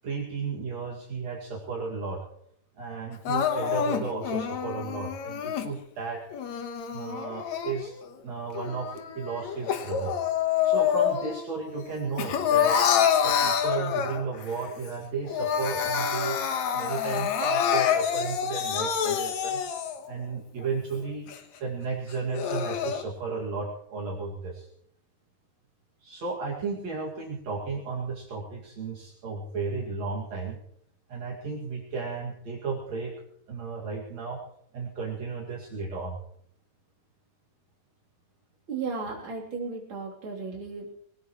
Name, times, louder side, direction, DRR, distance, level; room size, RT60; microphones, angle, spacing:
voice 1, 0.0-2.2 2.8-6.2 6.9-8.0 8.2-10.2 10.6-12.8 13.2-16.4 16.7-19.6 20.1-21.3 21.6-24.7 26.0-30.6 31.1-33.1 33.5-34.4 34.7-36.2, right 4 dB, 65° right, -2 dB, 3.5 m, -34 dB
Crying sobbing, 3.3-5.7 6.3-8.1 8.5-11.5 11.8-14.4 14.9-15.0 15.2-20.1 20.6-20.7 21.3-21.4 22.1-23.0, left 8 dB, 70° left, 2.6 m, -27 dB
voice 2, 38.7-40.9, right 4 dB, 40° right, -2 dB, 3.9 m, -35 dB
21.5 x 18.5 x 3.1 m, 0.67 s
omnidirectional pair, 3.4 m